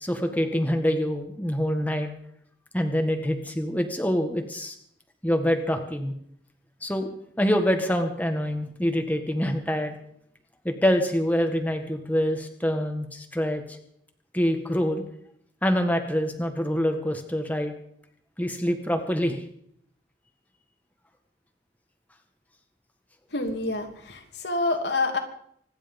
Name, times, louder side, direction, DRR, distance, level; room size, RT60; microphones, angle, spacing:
voice 1, 0.0-2.1 2.7-4.8 5.2-6.1 6.8-7.1 7.4-10.0 10.7-13.6 14.3-15.0 15.6-17.7 18.4-19.4, equal, 10° left, 4 dB, 1.8 m, -25 dB
voice 2, 23.3-25.2, left 2 dB, 75° left, 4 dB, 2.9 m, -27 dB
25.5 x 10.5 x 5.4 m, 0.66 s
head